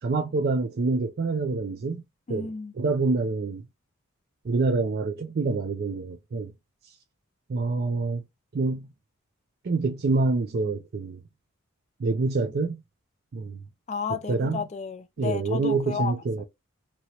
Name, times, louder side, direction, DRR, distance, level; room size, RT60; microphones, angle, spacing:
voice 1, 0.0-2.0 2.3-2.5 2.8-3.6 4.4-6.5 6.8-7.0 7.5-8.2 8.5-8.9 9.6-11.2 12.0-12.8 13.3-13.6 14.3-14.6 15.2-16.4, right 3 dB, 45° right, 0.4 m, -26 dB
voice 2, 2.3-2.7 13.9-16.4, left 5 dB, 30° left, 0.4 m, -32 dB
3.0 x 2.8 x 2.8 m
head